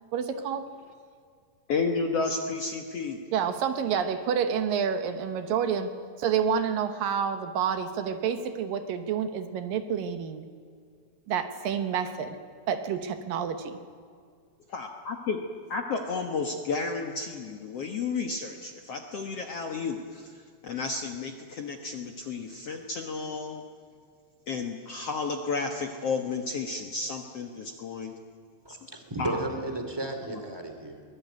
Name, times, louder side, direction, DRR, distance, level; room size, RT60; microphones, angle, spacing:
voice 1, 0.1-0.8 3.3-10.5 11.3-12.4 12.7-13.8, right 7 dB, 70° right, 8 dB, 2.8 m, -29 dB
voice 2, 1.7-3.2 14.7-15.4 15.7-23.6 24.5-28.2 28.7-28.8 29.2-29.4 30.3-30.4, left 4 dB, 55° left, 3 dB, 1.8 m, -32 dB
voice 3, 28.6-31.0, right 2 dB, 5° right, 5 dB, 2.4 m, -34 dB
23.5 x 20.0 x 9.4 m, 2.2 s
omnidirectional pair, 4.3 m